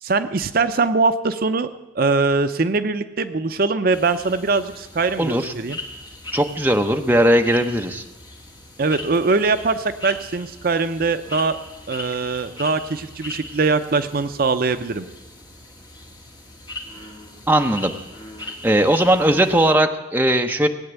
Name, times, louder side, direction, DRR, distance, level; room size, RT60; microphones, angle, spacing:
voice 1, 0.0-1.7 2.0-5.8 8.8-11.6 11.9-15.1, right 3 dB, 45° right, 10 dB, 0.6 m, -22 dB
sound 1, 3.9-19.7, left 2 dB, 20° left, 1.8 m, -39 dB
voice 2, 5.2-5.5 6.3-8.0 17.5-17.9 18.4-20.7, right 1 dB, 10° right, 4 dB, 0.8 m, -18 dB
18.5 x 8.8 x 8.1 m, 1.0 s
head